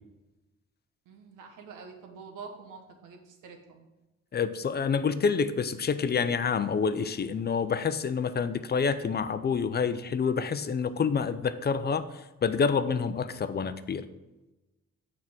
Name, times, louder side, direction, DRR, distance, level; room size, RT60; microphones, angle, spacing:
voice 1, 1.0-3.8, right 5 dB, 85° right, 4 dB, 1.3 m, -46 dB
voice 2, 4.3-14.1, left 5 dB, 35° left, 12 dB, 0.5 m, -28 dB
7.3 x 4.8 x 5.9 m, 1.1 s
cardioid pair, 90°, 30 cm